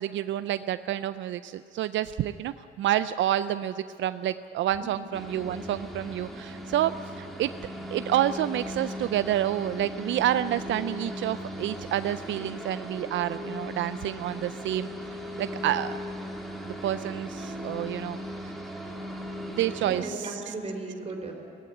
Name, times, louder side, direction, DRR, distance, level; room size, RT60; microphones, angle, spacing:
voice 1, 0.0-7.5 7.9-14.9 15.4-15.9 16.8-18.5 19.5-20.5, right 12 dB, 70° right, 13 dB, 0.5 m, -29 dB
sound 1, 5.1-20.0, equal, ahead, 2.7 m, -38 dB
voice 2, 12.3-12.8 19.8-21.3, right 2 dB, 30° right, 2 dB, 4.3 m, -37 dB
17.0 x 15.5 x 9.9 m, 2.8 s
cardioid pair, 90°, 20 cm